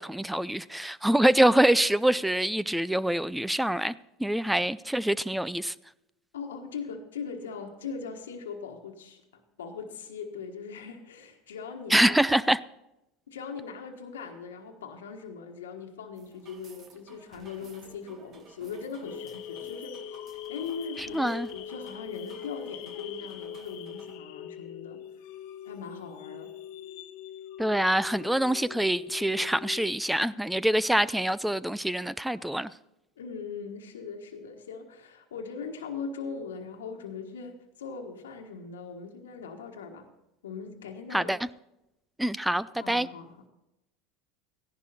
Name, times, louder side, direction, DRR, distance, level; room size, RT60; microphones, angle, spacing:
voice 1, 0.0-5.7 11.9-12.6 21.0-21.5 27.6-32.7 41.1-41.4 42.2-43.1, right 1 dB, 5° right, 0.4 m, -25 dB
voice 2, 6.3-12.1 13.3-20.2 20.5-25.0 25.6-26.5 33.2-40.1 40.4-41.3 42.8-43.5, left 5 dB, 90° left, 1.3 m, -40 dB
sound 1, 16.1-24.2, right 4 dB, 40° right, 1.8 m, -55 dB
sound 2, 19.0-30.0, left 9 dB, 65° left, 0.9 m, -42 dB
15.0 x 11.0 x 4.2 m
hypercardioid pair, 90°, 0 cm